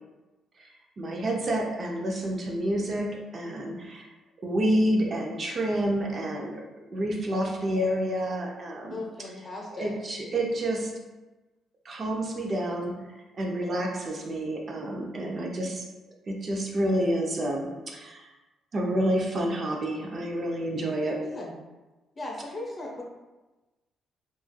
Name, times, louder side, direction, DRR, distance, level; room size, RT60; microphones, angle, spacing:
voice 1, 0.6-4.1 4.4-9.0 9.7-10.9 11.8-12.9 13.3-15.8 16.3-18.3 18.7-21.2, right 1 dB, 45° right, 0 dB, 0.4 m, -29 dB
voice 2, 8.9-9.9 21.2-21.5 22.2-23.0, left 2 dB, 30° left, -2 dB, 0.7 m, -37 dB
3.0 x 2.3 x 2.2 m, 1.1 s
cardioid pair, 90°, 0 cm